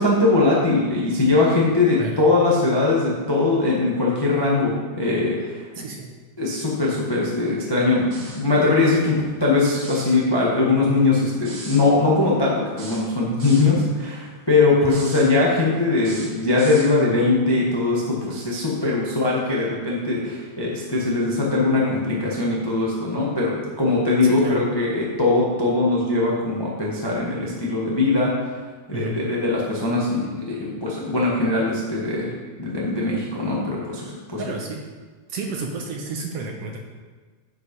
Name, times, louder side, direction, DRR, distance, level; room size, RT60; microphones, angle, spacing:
voice 1, 0.0-5.6 6.4-28.3 28.9-32.3 32.6-34.0 34.3-34.4, left 3 dB, 25° left, -4 dB, 0.5 m, -21 dB
voice 2, 5.8-6.1 14.8-15.0 24.2-24.6 28.9-29.1 34.4-34.9 35.3-36.8, right 3 dB, 70° right, 1 dB, 1.7 m, -31 dB
sound 1, 8.1-8.5 9.7-10.1 11.4-11.8 12.8-13.7 14.8-15.3 16.0-16.9, right 2 dB, 50° right, 1.9 m, -38 dB
9.5 x 5.3 x 5.3 m, 1.4 s
omnidirectional pair, 3.3 m